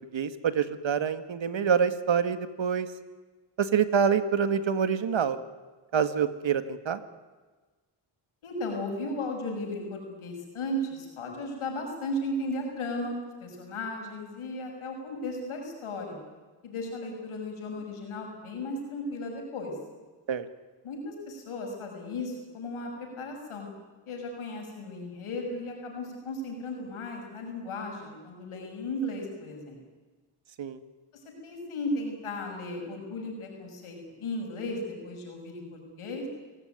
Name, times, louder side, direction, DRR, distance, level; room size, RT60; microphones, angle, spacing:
voice 1, 0.1-2.9 3.6-5.4 5.9-7.0 20.3-20.5 30.6-30.8, right 7 dB, 65° right, 11 dB, 2.0 m, -26 dB
voice 2, 8.4-16.2 16.6-19.7 20.8-23.7 24.1-29.8 31.4-36.3, left 1 dB, 85° left, 2 dB, 7.2 m, -35 dB
27.5 x 17.0 x 9.6 m, 1.3 s
cardioid pair, 55°, 48 cm